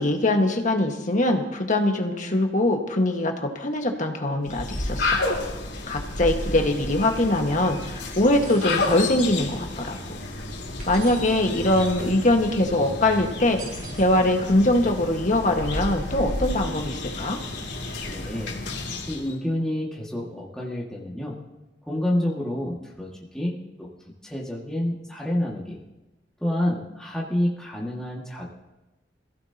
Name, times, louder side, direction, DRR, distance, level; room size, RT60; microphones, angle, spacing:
voice 1, 0.0-5.2 5.9-10.0 10.9-17.4, left 1 dB, 45° left, 3 dB, 1.7 m, -22 dB
sound 1, 4.4-19.3, left 2 dB, 80° left, 2.9 m, -31 dB
sound 2, 8.4-9.0 10.8-11.4 13.6-14.1, right 5 dB, 50° right, 4.7 m, -43 dB
voice 2, 18.1-18.6 19.1-21.4 21.9-23.9 24.2-25.8 26.4-28.5, left 1 dB, 5° left, -5 dB, 2.1 m, -28 dB
26.0 x 15.5 x 2.9 m, 1.0 s
head